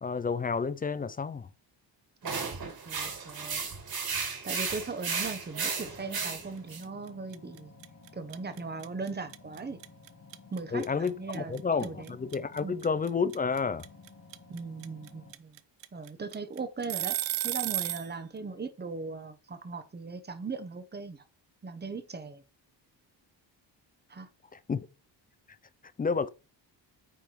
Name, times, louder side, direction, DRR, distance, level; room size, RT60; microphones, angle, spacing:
voice 1, 0.0-1.5 10.7-13.9 24.5-24.9 26.0-26.3, left 5 dB, 20° left, 0.3 m, -30 dB
voice 2, 2.2-3.6 4.4-7.7 8.1-9.8 10.5-12.2 12.6-12.8 14.5-15.5 15.9-17.2 17.4-21.2 21.6-22.4 24.1-24.3, right 4 dB, 25° right, 1.0 m, -39 dB
sound 1, 2.2-6.8, right 5 dB, 50° right, 2.4 m, -34 dB
sound 2, 5.8-15.3, left 4 dB, 45° left, 2.8 m, -54 dB
sound 3, 6.8-7.1 7.3-18.1, right 13 dB, 75° right, 0.7 m, -33 dB
9.2 x 3.4 x 4.5 m
cardioid pair, 135°, 44 cm